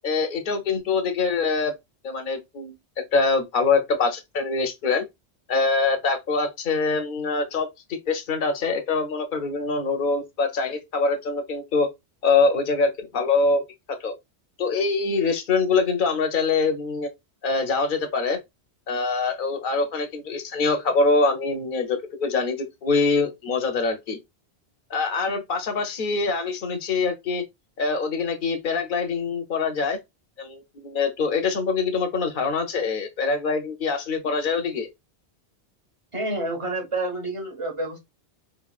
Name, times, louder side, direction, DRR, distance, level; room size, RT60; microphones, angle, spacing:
voice 1, 0.0-1.7 2.0-2.7 3.1-5.0 5.5-11.9 12.2-13.6 13.9-14.1 14.6-17.1 17.4-18.4 18.9-24.2 24.9-27.4 27.8-30.0 30.4-34.9, left 4 dB, 50° left, 0.9 m, -24 dB
voice 2, 36.1-38.0, right 2 dB, 30° right, 1.2 m, -28 dB
4.1 x 2.7 x 2.3 m
omnidirectional pair, 1.1 m